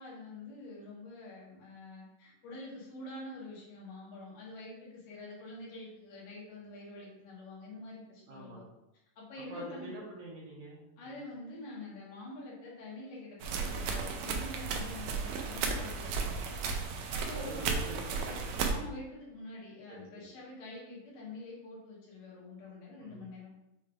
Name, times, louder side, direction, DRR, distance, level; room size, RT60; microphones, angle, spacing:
voice 1, 0.0-8.6 9.2-9.9 11.0-16.6 17.1-17.7 18.7-23.5, left 2 dB, 75° left, -5 dB, 2.9 m, -46 dB
voice 2, 8.3-8.7 9.5-11.2 17.3-18.8 19.9-20.3 23.0-23.2, equal, 70° right, -4 dB, 1.9 m, -45 dB
sound 1, 13.4-18.7, right 5 dB, 90° right, 1.6 m, -34 dB
6.4 x 3.2 x 2.4 m, 0.89 s
omnidirectional pair, 3.8 m